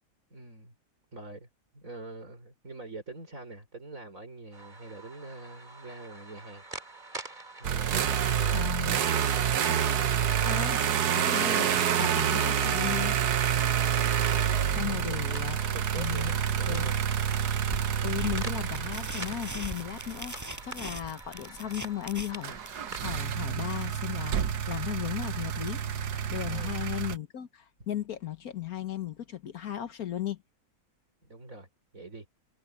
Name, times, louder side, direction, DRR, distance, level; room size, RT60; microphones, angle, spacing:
voice 1, 0.3-0.7 1.1-1.5 1.7-6.6 7.6-9.1 14.7-17.1 26.5-26.7 31.2-31.7 31.9-32.3, right 2 dB, 55° right, 5.2 m, -44 dB
sound 1, 4.5-23.1, right 2 dB, 30° right, 2.6 m, -47 dB
sound 2, 7.6-20.7 22.4-27.2, right 9 dB, 80° right, 1.5 m, -28 dB
voice 2, 8.5-9.0 10.4-13.2 14.8-16.4 16.7-16.9 18.0-25.8 26.3-30.4, left 11 dB, 65° left, 1.5 m, -36 dB
sound 3, 17.7-26.9, equal, 10° right, 5.9 m, -43 dB
omnidirectional pair, 1.7 m